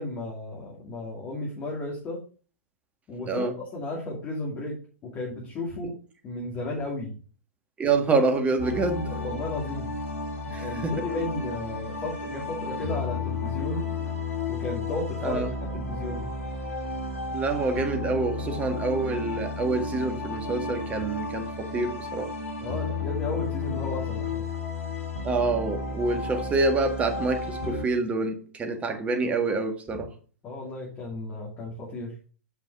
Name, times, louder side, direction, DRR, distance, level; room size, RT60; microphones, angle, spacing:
voice 1, 0.0-2.2 3.1-6.0 6.2-7.2 9.1-9.9 10.6-13.9 14.5-15.4 15.7-16.3 22.6-24.4 30.4-32.1, left 2 dB, 25° left, -3 dB, 2.6 m, -34 dB
voice 2, 7.8-9.1 10.5-10.9 15.2-15.5 17.3-22.3 25.2-30.1, right 3 dB, 15° right, 5 dB, 1.7 m, -27 dB
sound 1, 8.6-27.9, left 3 dB, 70° left, 2.7 m, -32 dB
8.6 x 5.2 x 4.8 m, 0.39 s
figure-of-eight pair, 110°, 8 cm